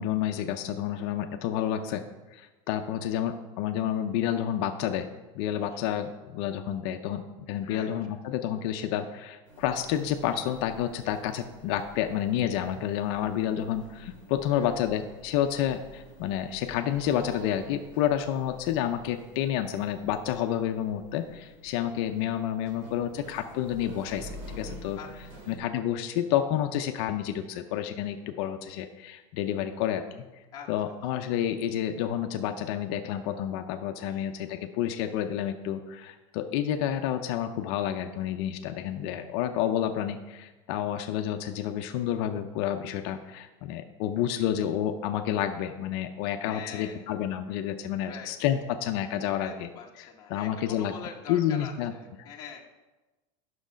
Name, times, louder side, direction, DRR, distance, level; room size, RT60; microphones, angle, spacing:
voice 1, 0.0-2.0 2.3-5.1 5.3-25.0 25.5-30.0 30.7-49.7 50.3-50.9 51.3-51.9, left 10 dB, 50° left, 6 dB, 0.6 m, -29 dB
voice 2, 7.6-8.2 14.5-14.8 25.0-25.5 27.0-27.2 30.5-30.7 34.1-34.5 46.4-47.1 48.0-48.3 49.4-52.6, left 7 dB, 20° left, -2 dB, 1.0 m, -45 dB
sound 1, 9.5-25.6, equal, 75° right, 2.9 m, -49 dB
9.7 x 6.4 x 5.1 m, 1.1 s
supercardioid pair, 170°, 17 cm